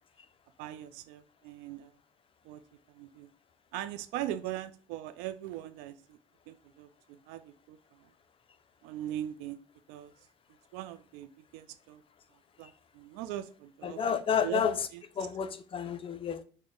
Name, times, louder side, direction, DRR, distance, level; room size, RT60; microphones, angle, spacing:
voice 1, 0.6-2.0 2.4-2.6 2.9-3.3 3.7-6.2 6.5-8.1 8.8-9.6 9.9-10.1 10.7-12.0 12.6-14.0 14.4-15.0, right 12 dB, 75° right, 0.4 m, -40 dB
voice 2, 13.8-14.9 15.2-16.4, left 7 dB, 35° left, 0.4 m, -30 dB
3.8 x 2.1 x 3.6 m
hypercardioid pair, 65°, 17 cm